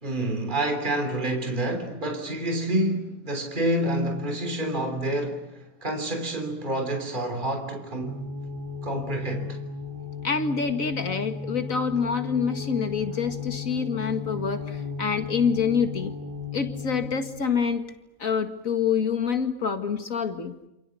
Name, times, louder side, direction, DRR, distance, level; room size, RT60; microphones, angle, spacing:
voice 1, 0.0-8.3 8.8-9.6, right 1 dB, 35° right, 3.5 m, -28 dB
sound 1, 8.0-17.4, left 5 dB, 15° right, 3.3 m, -35 dB
voice 2, 10.2-16.1 16.5-17.8 18.2-20.5, left 6 dB, 75° left, 2.4 m, -26 dB
29.0 x 28.5 x 7.1 m
omnidirectional pair, 1.4 m